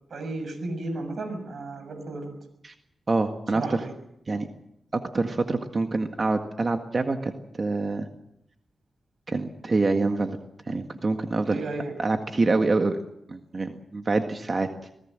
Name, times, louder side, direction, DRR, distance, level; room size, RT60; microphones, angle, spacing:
voice 1, 0.1-2.3 3.5-3.9 11.5-11.9, right 2 dB, 70° right, 8 dB, 6.5 m, -33 dB
voice 2, 3.1-3.8 4.3-4.5 4.9-8.1 9.3-10.4 10.7-11.6 12.0-13.0 13.3-14.7, right 3 dB, 40° right, 5 dB, 1.8 m, -26 dB
26.5 x 18.0 x 7.7 m, 0.79 s
cardioid pair, 75°, 0 cm